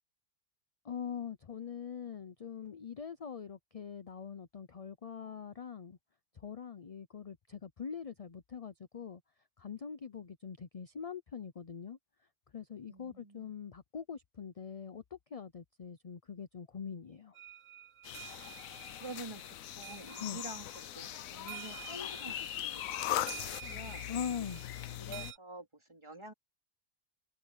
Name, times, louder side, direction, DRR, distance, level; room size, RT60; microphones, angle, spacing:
voice 1, 0.8-6.0 6.4-9.2 9.6-12.0 12.5-17.3 20.2-20.4 24.1-24.6, left 7 dB, 40° left, 0.5 m, -43 dB
voice 2, 12.9-13.5 18.6-19.4 19.8-20.7 21.0-24.5 24.9-26.3, right 1 dB, 20° right, 4.1 m, -48 dB
sound 1, 17.3-25.4, right 10 dB, 90° right, 1.7 m, -51 dB
sound 2, 18.0-25.3, left 12 dB, 75° left, 1.1 m, -40 dB
open air
omnidirectional pair, 1.5 m